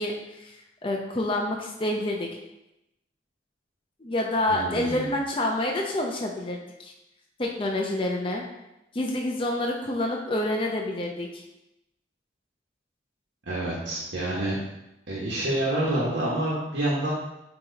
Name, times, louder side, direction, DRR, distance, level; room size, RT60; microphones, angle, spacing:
voice 1, 0.0-2.3 4.0-6.9 7.4-8.5 8.9-11.4, left 1 dB, 30° left, 0 dB, 0.6 m, -28 dB
voice 2, 4.5-5.1 13.5-14.5 15.1-17.1, right 1 dB, 75° right, -7 dB, 1.4 m, -27 dB
8.7 x 3.0 x 4.0 m, 0.90 s
head